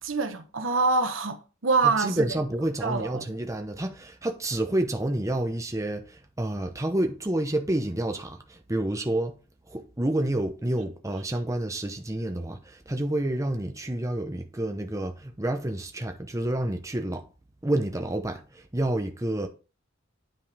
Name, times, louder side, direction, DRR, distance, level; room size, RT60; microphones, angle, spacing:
voice 1, 0.0-1.4 1.6-2.4 2.8-3.2, right 4 dB, 80° right, 1.2 m, -25 dB
voice 2, 1.8-9.4 9.7-17.2 17.6-19.5, right 1 dB, 15° right, 0.9 m, -29 dB
9.5 x 5.4 x 3.4 m
head